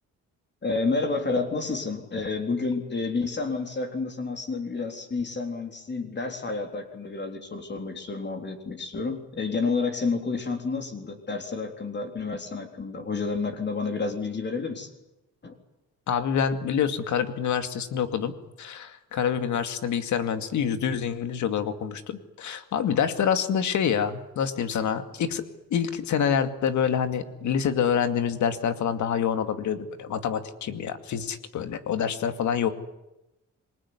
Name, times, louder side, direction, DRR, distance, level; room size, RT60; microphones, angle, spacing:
voice 1, 0.6-14.9 15.4-15.5, left 4 dB, 35° left, 5 dB, 3.8 m, -30 dB
voice 2, 16.1-18.3 18.6-25.4 25.7-32.7, left 8 dB, 70° left, 9 dB, 2.4 m, -26 dB
26.5 x 19.5 x 9.8 m, 0.93 s
cardioid pair, 90°, 30 cm